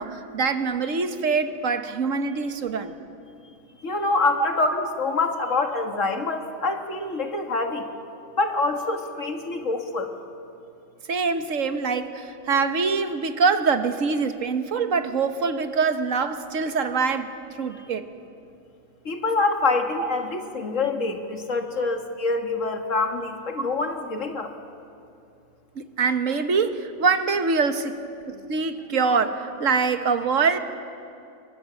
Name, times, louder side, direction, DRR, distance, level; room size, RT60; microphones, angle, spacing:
voice 1, 0.0-2.9 11.1-18.0 20.0-20.1 25.7-27.9 28.3-30.6, right 5 dB, 70° right, 9 dB, 1.6 m, -24 dB
voice 2, 3.8-7.9 8.4-10.2 17.7-17.8 19.1-24.5, left 3 dB, 65° left, 5 dB, 2.1 m, -26 dB
28.5 x 23.5 x 7.0 m, 2.6 s
omnidirectional pair, 1.4 m